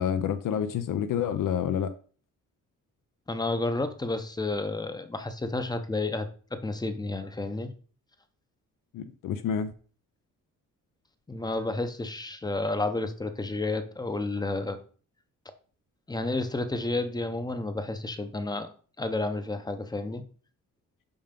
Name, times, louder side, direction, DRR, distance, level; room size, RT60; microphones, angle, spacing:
voice 1, 0.0-1.9 8.9-9.7, left 8 dB, 75° left, 0.6 m, -28 dB
voice 2, 3.3-7.7 11.3-14.8 16.1-18.7 19.0-20.2, left 2 dB, 10° left, 0.7 m, -31 dB
5.6 x 5.5 x 5.2 m
wide cardioid pair, 160°, 32 cm